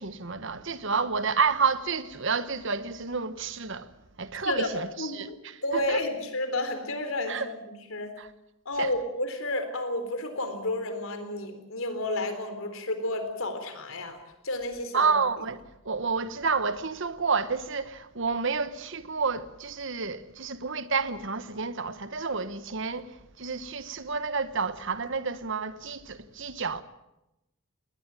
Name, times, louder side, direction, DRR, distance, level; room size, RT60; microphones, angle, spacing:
voice 1, 0.0-3.9 4.2-6.0 7.3-7.5 8.2-8.3 8.8-8.9 14.9-26.8, right 5 dB, 60° right, 1.2 m, -30 dB
voice 2, 4.4-8.1 8.7-14.2 14.4-15.1, left 1 dB, 70° left, 4.0 m, -31 dB
20.0 x 19.5 x 9.0 m
head